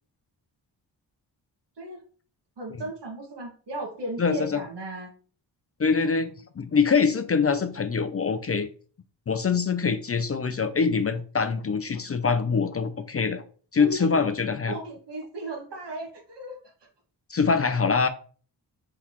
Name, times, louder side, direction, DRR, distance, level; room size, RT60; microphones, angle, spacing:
voice 1, 2.6-5.1 13.8-14.1 14.7-16.6, right 1 dB, 65° right, 0 dB, 2.0 m, -35 dB
voice 2, 4.2-4.6 5.8-6.3 6.6-8.7 9.3-13.4 13.7-14.8 17.3-18.1, left 5 dB, 30° left, 9 dB, 0.5 m, -24 dB
4.2 x 3.8 x 3.0 m, 0.41 s
supercardioid pair, 50°, 46 cm